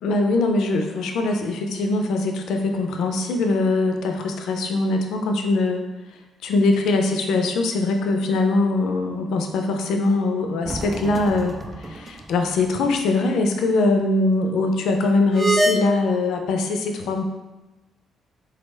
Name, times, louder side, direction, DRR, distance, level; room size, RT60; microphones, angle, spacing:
voice 1, 0.0-5.9 6.4-17.2, left 2 dB, 80° left, 4 dB, 0.3 m, -22 dB
sound 1, 10.6-12.3 12.6-12.7 15.3-15.8, right 1 dB, 25° right, 0.3 m, -25 dB
3.7 x 2.1 x 3.2 m, 1.1 s
cardioid pair, 90°, 0 cm